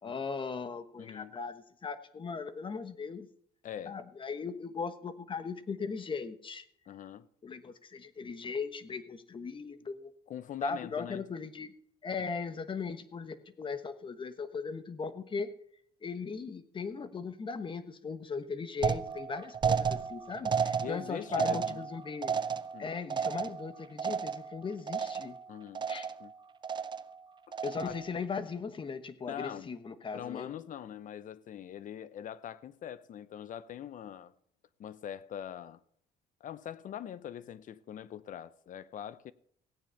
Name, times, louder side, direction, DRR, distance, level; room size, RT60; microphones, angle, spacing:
voice 1, 0.0-3.3 3.9-6.6 7.4-10.1 10.6-11.7 12.0-15.5 16.0-22.3 22.8-25.4 25.9-26.1 27.6-30.5, left 5 dB, 30° left, 1.2 m, -38 dB
voice 2, 1.0-1.3 3.6-4.0 6.9-7.3 10.3-11.2 12.2-12.3 20.4-20.5 20.8-21.9 22.7-22.9 25.5-25.9 26.2-26.3 27.5-27.9 29.3-29.7 30.1-34.3 34.8-35.8 36.4-39.3, left 10 dB, 50° left, 0.7 m, -43 dB
sound 1, 18.8-24.6 24.9-25.4 25.7-26.3 26.6-27.2 27.5-28.1, right 6 dB, 25° right, 0.5 m, -33 dB
16.5 x 9.2 x 4.5 m
cardioid pair, 110°, 17 cm